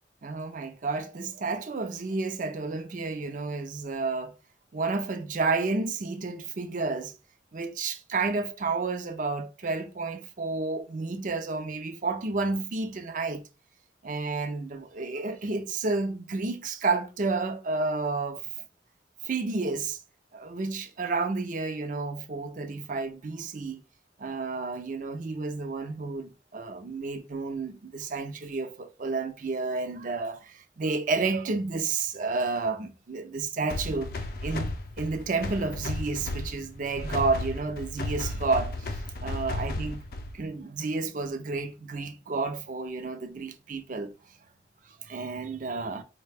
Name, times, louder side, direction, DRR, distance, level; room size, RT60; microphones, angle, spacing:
voice 1, 0.2-4.3 4.7-7.1 7.5-13.4 14.0-18.5 19.2-20.0 20.3-23.8 24.2-34.1 34.4-34.7 35.0-40.0 40.3-44.1 45.0-46.0, right 3 dB, 45° right, 0.5 m, -31 dB
sound 1, 33.7-40.5, left 2 dB, 55° left, 0.5 m, -34 dB
4.6 x 2.2 x 3.3 m
head